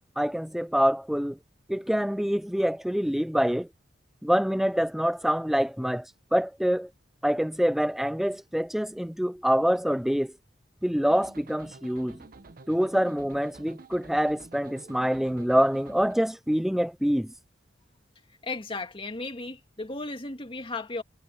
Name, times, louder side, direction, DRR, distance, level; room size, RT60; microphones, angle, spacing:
voice 1, 0.2-1.4 1.7-3.7 4.2-6.1 6.3-6.9 7.2-10.3 10.8-12.2 12.7-17.3, equal, ahead, 0.3 m, -25 dB
sound 1, 11.1-16.1, right 3 dB, 50° right, 0.9 m, -49 dB
voice 2, 18.4-21.0, left 3 dB, 30° left, 2.3 m, -35 dB
head